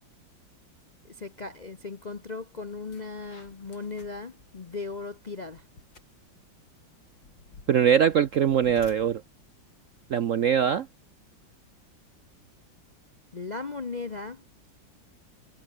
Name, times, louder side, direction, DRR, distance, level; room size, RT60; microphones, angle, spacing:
voice 1, 1.0-5.6 13.3-14.4, left 4 dB, 40° left, 0.6 m, -37 dB
sound 1, 2.2-2.3 2.7-11.0, left 3 dB, 70° left, 5.3 m, -54 dB
voice 2, 7.7-9.2 10.1-10.9, right 8 dB, 65° right, 0.8 m, -22 dB
omnidirectional pair, 2.1 m